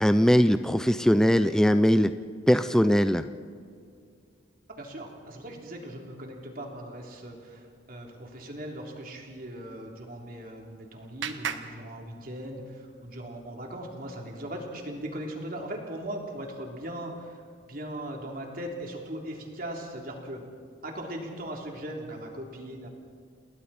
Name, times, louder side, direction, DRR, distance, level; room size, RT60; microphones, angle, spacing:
voice 1, 0.0-2.1 2.5-3.2, equal, 5° left, 10 dB, 0.4 m, -21 dB
voice 2, 4.8-17.4 17.7-20.4 20.8-22.9, right 1 dB, 45° right, 0 dB, 3.5 m, -39 dB
Clapping, 10.1-12.7, right 7 dB, 75° right, 1.4 m, -40 dB
29.5 x 20.0 x 4.4 m, 2.3 s
head